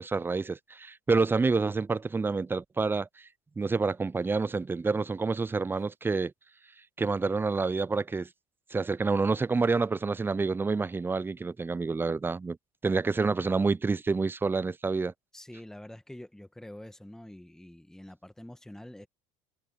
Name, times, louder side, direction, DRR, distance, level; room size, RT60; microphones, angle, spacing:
voice 1, 0.0-3.1 3.6-6.3 7.0-8.3 8.7-12.6 12.8-15.1, right 4 dB, 15° right, 0.5 m, -28 dB
voice 2, 15.3-19.1, left 1 dB, 5° left, 1.8 m, -46 dB
hypercardioid pair, 80°, 16 cm